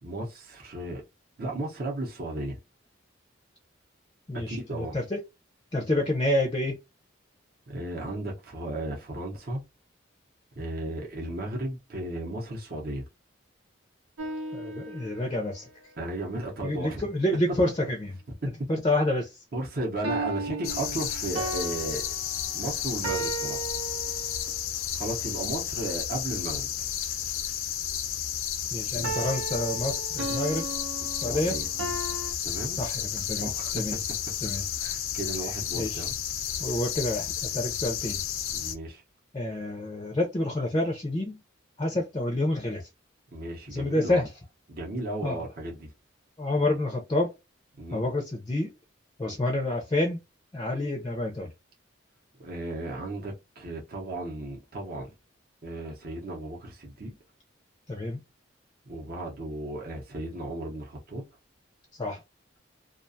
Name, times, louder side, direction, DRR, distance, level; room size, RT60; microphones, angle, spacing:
voice 1, 0.0-1.0 1.4-2.6 4.3-5.0 7.7-9.6 10.6-13.0 16.0-17.1 18.4-18.5 19.5-22.2 22.5-23.7 24.9-26.9 28.9-29.1 31.0-31.7 32.4-32.8 33.3-34.0 34.8-36.1 38.5-39.0 43.3-44.2 44.7-45.9 47.8-48.0 52.4-55.1 55.6-57.1 58.9-61.2, right 1 dB, 45° right, 0.7 m, -35 dB
voice 2, 4.3-5.2 5.7-6.8 14.5-15.7 16.6-18.1 18.7-19.4 28.7-30.6 31.1-31.6 32.8-34.0 34.4-34.6 35.7-36.0 36.6-38.2 39.3-41.4 41.8-42.9 43.7-44.3 45.2-45.5 46.4-47.3 47.9-48.7 49.2-50.2 50.5-51.5 57.9-58.2 62.0-62.2, left 1 dB, 20° left, 0.4 m, -28 dB
sound 1, 14.2-15.6 20.0-24.6 29.0-32.3, right 3 dB, 85° right, 0.7 m, -36 dB
sound 2, 20.6-38.8, left 9 dB, 85° left, 0.5 m, -32 dB
2.4 x 2.2 x 2.6 m
head